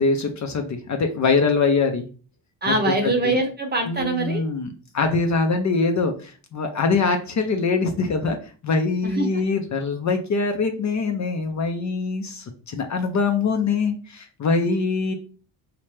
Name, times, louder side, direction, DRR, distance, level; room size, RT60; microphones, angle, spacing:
voice 1, 0.0-2.0 2.7-2.8 3.2-3.4 3.9-4.7 4.9-8.4 8.6-15.1, left 4 dB, 40° left, 5 dB, 0.6 m, -23 dB
voice 2, 2.6-4.5 9.0-9.3, right 2 dB, 20° right, 3 dB, 0.8 m, -23 dB
3.2 x 2.9 x 3.2 m, 0.38 s
cardioid pair, 90°, 45 cm